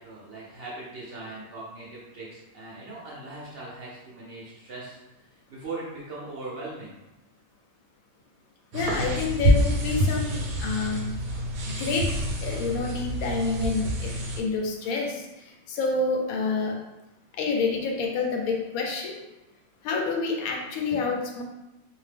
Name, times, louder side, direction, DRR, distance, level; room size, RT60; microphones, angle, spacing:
voice 1, 0.0-5.0 5.5-7.0, right 2 dB, 55° right, -6 dB, 0.7 m, -39 dB
voice 2, 8.7-11.1 11.8-14.1 14.4-16.8 17.3-19.2 19.8-21.4, left 4 dB, 80° left, 1 dB, 1.0 m, -28 dB
sound 1, 8.7-14.4, equal, 85° right, 1.1 m, -27 dB
2.7 x 2.1 x 3.3 m, 0.97 s
omnidirectional pair, 1.5 m